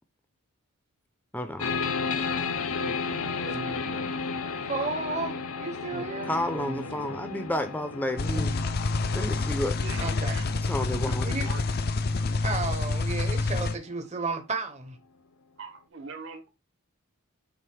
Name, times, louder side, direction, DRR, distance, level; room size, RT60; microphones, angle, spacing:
voice 1, 1.3-1.7 6.3-8.5 9.1-9.8 10.6-11.3, left 1 dB, 10° left, 0.6 m, -31 dB
sound 1, 1.6-12.8, left 5 dB, 80° left, 0.8 m, -34 dB
Speech, 2.8-4.6 5.9-7.6, right 3 dB, 85° right, 1.1 m, -42 dB
voice 2, 3.1-3.4 4.6-6.3 8.3-8.5 10.0-10.3 11.2-11.5 12.4-15.0, right 3 dB, 30° right, 1.0 m, -33 dB
sound 2, 8.2-13.7, left 3 dB, 45° left, 0.6 m, -28 dB
voice 3, 9.8-10.5 11.1-11.6 15.6-16.5, right 4 dB, 60° right, 1.6 m, -41 dB
7.7 x 2.6 x 5.0 m
head